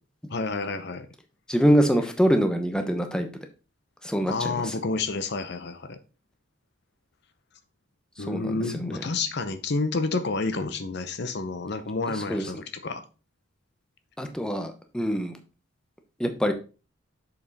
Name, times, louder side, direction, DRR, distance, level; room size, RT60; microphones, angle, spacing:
voice 1, 0.3-1.1 4.2-6.0 8.2-13.0, left 3 dB, 60° left, 10 dB, 0.7 m, -29 dB
voice 2, 1.5-3.3 4.0-4.6 8.2-9.0 12.3-12.4 14.2-15.4 16.2-16.5, equal, 5° left, 6 dB, 0.9 m, -24 dB
7.1 x 5.4 x 4.0 m, 0.33 s
head